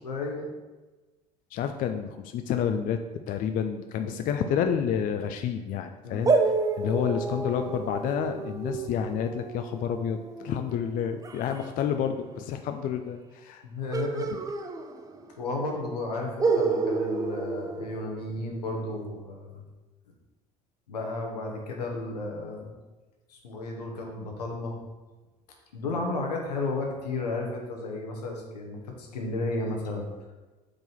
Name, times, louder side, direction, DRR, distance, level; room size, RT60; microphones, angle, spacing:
voice 1, 0.0-0.5 4.0-4.3 6.0-6.4 13.6-14.3 15.4-19.6 20.9-22.7 23.3-24.8 25.7-30.0, left 2 dB, 80° left, 1 dB, 1.1 m, -33 dB
voice 2, 1.5-3.0 3.3-6.3 6.8-13.6, left 8 dB, 45° left, 7 dB, 0.4 m, -29 dB
sound 1, 6.2-11.7 13.9-15.4 15.6-15.7 16.4-18.6, right 4 dB, 15° right, 0.5 m, -29 dB
4.8 x 3.8 x 5.5 m, 1.2 s
figure-of-eight pair, 60°, 20 cm